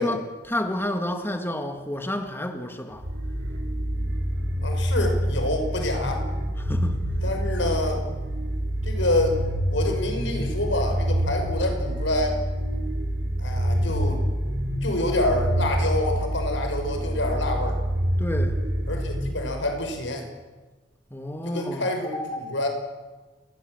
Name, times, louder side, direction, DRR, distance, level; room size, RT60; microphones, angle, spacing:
voice 1, 0.0-3.0 6.6-7.0 11.3-11.5 18.2-18.5 21.1-22.5, left 1 dB, 15° left, 5 dB, 2.0 m, -30 dB
sound 1, 3.0-19.8, equal, 70° right, 7.5 m, -27 dB
voice 2, 4.6-6.2 7.2-8.0 8.8-9.4 9.7-12.4 13.4-14.2 14.8-17.8 18.9-20.3 21.5-22.2 22.5-22.7, left 1 dB, 80° left, 5 dB, 5.8 m, -27 dB
29.0 x 21.0 x 7.8 m, 1.3 s
head